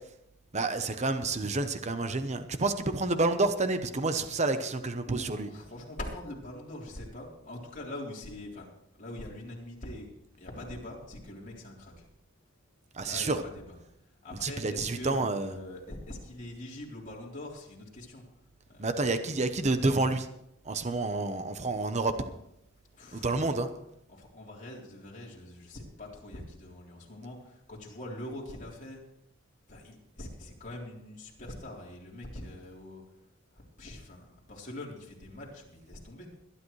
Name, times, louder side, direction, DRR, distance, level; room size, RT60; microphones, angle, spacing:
voice 1, 0.5-5.5 13.0-13.4 14.4-15.5 18.8-20.3 20.7-22.1 23.1-23.7, right 3 dB, 35° right, 9 dB, 0.9 m, -29 dB
voice 2, 4.1-4.6 5.1-8.7 9.0-10.1 10.3-11.9 13.0-13.8 14.2-18.2 18.7-19.3 22.9-23.6 24.2-29.0 29.7-33.0 33.8-36.3, left 1 dB, 40° left, -3 dB, 3.7 m, -43 dB
22.0 x 11.0 x 3.2 m, 0.79 s
head